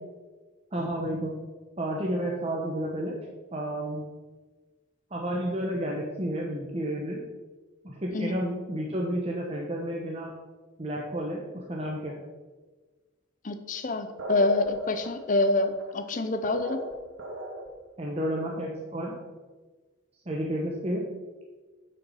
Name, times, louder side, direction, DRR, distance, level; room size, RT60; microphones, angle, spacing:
voice 1, 0.7-1.4 1.8-3.2 3.5-4.0 5.1-7.2 7.8-10.3 10.8-12.2 18.0-19.2 20.3-21.0, right 1 dB, 30° right, -2 dB, 1.0 m, -31 dB
voice 2, 13.4-16.9, left 2 dB, 40° left, 9 dB, 0.6 m, -26 dB
sound 1, 14.2-17.9, right 1 dB, 80° right, 1.5 m, -37 dB
9.8 x 5.9 x 5.6 m, 1.3 s
head